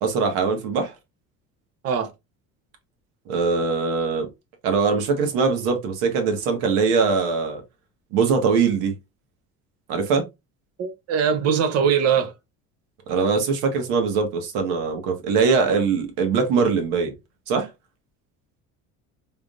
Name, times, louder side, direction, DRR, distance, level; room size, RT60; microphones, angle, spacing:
voice 1, 0.0-0.9 3.3-4.3 4.6-7.6 8.1-8.9 9.9-10.3 13.1-17.1 17.5-17.7, right 5 dB, 90° right, 1.5 m, -22 dB
voice 2, 10.8-12.3, right 7 dB, 50° right, 0.8 m, -21 dB
3.7 x 3.4 x 2.4 m
cardioid pair, 170°, 33 cm